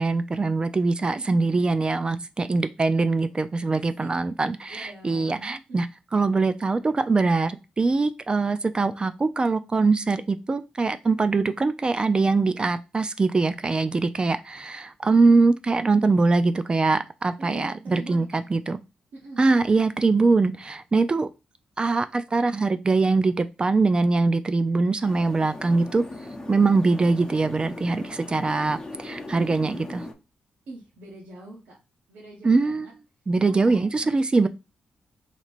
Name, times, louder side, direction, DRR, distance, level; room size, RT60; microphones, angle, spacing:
voice 1, 0.0-5.9 6.1-18.8 19.4-21.3 21.8-26.0 26.5-30.1 32.4-32.9 33.3-34.5, right 3 dB, 30° right, 12 dB, 0.4 m, -22 dB
voice 2, 3.7-4.1 4.7-5.8 17.4-18.4 19.1-19.4 30.7-31.8 32.1-32.9 33.5-34.2, right 2 dB, 85° right, -4 dB, 1.2 m, -44 dB
sound 1, 25.0-30.1, left 2 dB, 20° left, 0.9 m, -39 dB
2.9 x 2.9 x 4.3 m, 0.27 s
cardioid pair, 75°, 3 cm